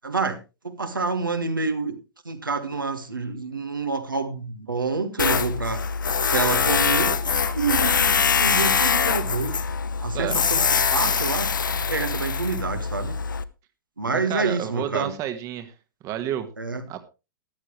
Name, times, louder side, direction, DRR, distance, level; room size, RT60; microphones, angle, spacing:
voice 1, 0.0-0.4 0.6-2.0 2.2-5.8 6.2-9.6 10.0-10.6 10.9-11.5 11.9-13.2 14.0-15.1 16.6-16.8, right 4 dB, 80° right, 6 dB, 1.7 m, -28 dB
Tools, 5.2-13.4, left 6 dB, 70° left, 0.7 m, -23 dB
voice 2, 14.1-15.7 16.0-16.5 16.9-17.0, right 11 dB, 30° right, 9 dB, 1.4 m, -30 dB
13.5 x 11.5 x 3.1 m, 0.28 s
figure-of-eight pair, 105°, 11 cm